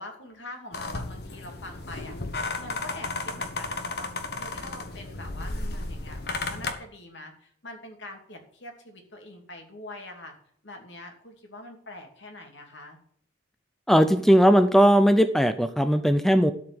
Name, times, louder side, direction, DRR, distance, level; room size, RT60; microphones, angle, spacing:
voice 1, 0.0-10.3 10.6-13.0, left 2 dB, 75° left, 3 dB, 2.6 m, -44 dB
sound 1, 0.7-6.7, left 2 dB, 55° left, 1.3 m, -34 dB
voice 2, 13.9-16.5, equal, ahead, 10 dB, 0.5 m, -18 dB
13.0 x 5.0 x 7.8 m, 0.63 s
head